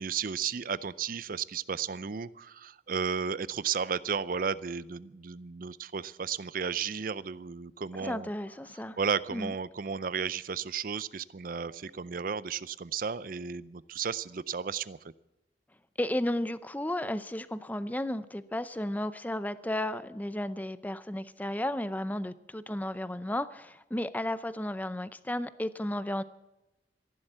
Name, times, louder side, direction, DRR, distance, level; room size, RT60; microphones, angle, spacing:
voice 1, 0.0-8.3 9.0-15.0, right 6 dB, 50° right, 18 dB, 0.5 m, -33 dB
voice 2, 8.0-9.0 9.3-9.5 16.0-26.2, left 1 dB, 10° left, 14 dB, 0.5 m, -33 dB
14.5 x 11.5 x 7.9 m, 0.95 s
head